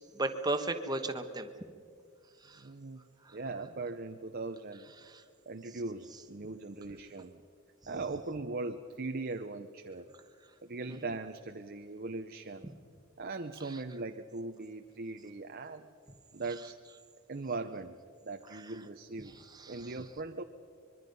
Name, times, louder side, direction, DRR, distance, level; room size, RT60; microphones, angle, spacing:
voice 1, 0.1-1.5 2.4-2.6 3.2-3.4 5.0-5.2 10.9-11.0 18.5-18.6 19.4-19.9, right 2 dB, 20° right, 7 dB, 1.3 m, -35 dB
voice 2, 2.5-3.0 3.3-4.9 5.5-7.4 7.9-10.1 10.6-12.7 13.2-15.9 16.3-16.8 17.3-18.0 18.2-19.3 19.7-20.4, right 3 dB, 45° right, 6 dB, 0.8 m, -40 dB
25.0 x 22.5 x 5.4 m, 2.2 s
head